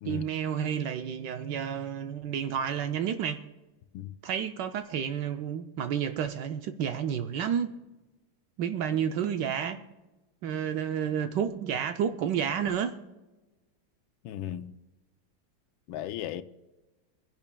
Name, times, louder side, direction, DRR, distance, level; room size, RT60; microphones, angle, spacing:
voice 1, 0.0-3.5 4.2-7.8 8.6-9.8 10.4-13.0, right 8 dB, 70° right, 1.1 m, -30 dB
voice 2, 14.2-14.8 15.9-16.4, left 12 dB, 80° left, 1.4 m, -36 dB
28.5 x 10.5 x 2.3 m
omnidirectional pair, 2.3 m